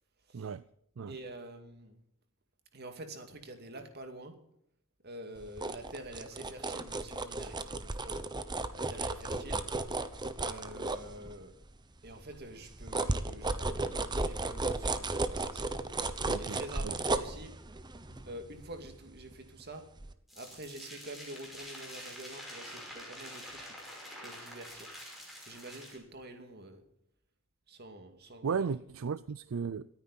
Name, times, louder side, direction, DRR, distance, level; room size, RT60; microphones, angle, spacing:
voice 1, 1.1-2.0 2.7-4.4 5.0-8.2 8.7-9.6 10.4-11.5 12.0-16.0 16.4-17.5 18.3-19.9 20.3-23.7 24.2-24.9 25.4-26.8 27.7-28.6, right 1 dB, 50° right, 2.4 m, -47 dB
sound 1, 5.4-11.6 12.1-19.6 20.0-20.1, right 2 dB, 20° right, 0.9 m, -35 dB
voice 2, 16.3-16.9 28.4-29.9, right 6 dB, 75° right, 0.4 m, -35 dB
sound 2, 20.3-26.0, equal, ahead, 5.4 m, -47 dB
27.0 x 9.6 x 4.2 m
head